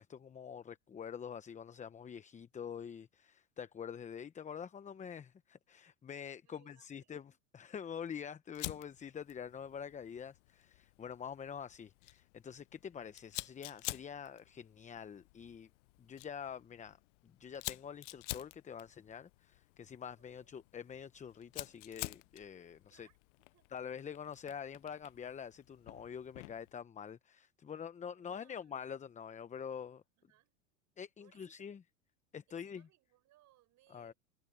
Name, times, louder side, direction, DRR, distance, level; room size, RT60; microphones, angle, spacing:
voice 1, 0.0-15.7 16.0-17.0 17.2-23.1 23.7-30.0 31.0-31.8 32.3-32.9 33.9-34.1, left 7 dB, 20° left, 0.9 m, -46 dB
voice 2, 6.4-7.3 7.9-8.3 20.2-20.5 22.9-23.7 28.1-28.9 30.2-30.6 31.2-31.7 32.5-34.2, right 15 dB, 45° right, 7.0 m, -70 dB
Fire, 8.5-26.7, left 23 dB, 65° left, 0.6 m, -49 dB
hypercardioid pair, 105°, 39 cm